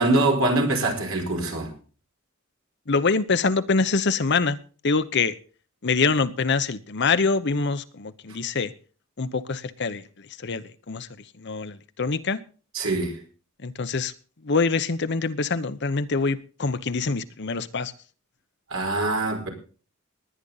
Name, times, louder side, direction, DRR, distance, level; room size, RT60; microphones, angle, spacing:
voice 1, 0.0-1.7 12.7-13.2 18.7-19.5, right 2 dB, 65° right, 4.8 m, -23 dB
voice 2, 2.9-4.6 4.8-5.3 5.8-8.7 9.2-10.0 10.4-11.1 11.4-12.4 13.6-14.1 14.4-17.9, left 4 dB, 55° left, 0.8 m, -25 dB
19.5 x 10.0 x 4.0 m
head